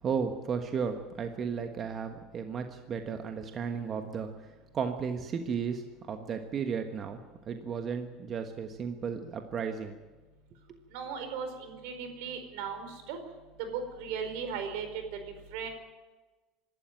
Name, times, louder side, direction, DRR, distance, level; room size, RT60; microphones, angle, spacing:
voice 1, 0.0-7.2 7.5-9.9, right 6 dB, 35° right, 6 dB, 1.3 m, -34 dB
voice 2, 10.9-13.2 13.6-15.2 15.5-15.7, right 6 dB, 75° right, 7 dB, 4.6 m, -37 dB
25.0 x 12.5 x 9.1 m, 1.2 s
supercardioid pair, 135°, 0 cm